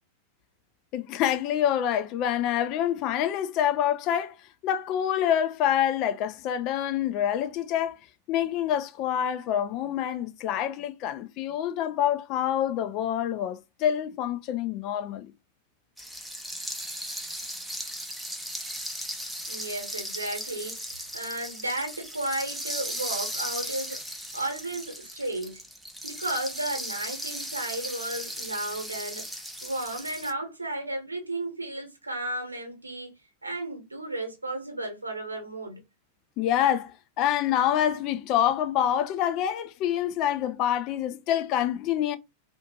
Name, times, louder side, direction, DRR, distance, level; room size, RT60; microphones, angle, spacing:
voice 1, 0.9-4.3 4.6-8.0 8.3-15.3 36.4-42.2, left 10 dB, 40° left, 0.4 m, -26 dB
sound 1, 16.0-30.3, equal, ahead, 0.6 m, -37 dB
voice 2, 19.5-24.0 24.3-25.6 26.0-29.3 29.6-33.1 33.4-35.8, right 1 dB, 80° right, 1.2 m, -33 dB
2.6 x 2.5 x 2.7 m
figure-of-eight pair, 90°, 0 cm